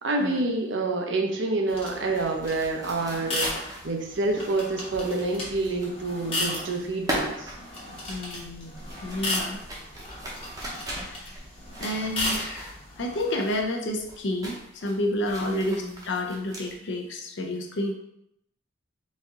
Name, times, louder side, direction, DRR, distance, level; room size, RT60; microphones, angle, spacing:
voice 1, 0.0-7.5 15.5-16.0, right 2 dB, 65° right, 2 dB, 0.6 m, -28 dB
sound 1, 1.7-13.3, left 2 dB, 25° left, 0.9 m, -36 dB
sound 2, 2.1-6.3 6.6-13.0 13.3-13.7 14.0-16.7, equal, 20° right, 0.7 m, -38 dB
voice 2, 8.1-9.6 11.0-11.3 11.8-17.9, left 1 dB, 65° left, 3 dB, 0.5 m, -30 dB
4.1 x 2.7 x 3.6 m, 0.78 s
head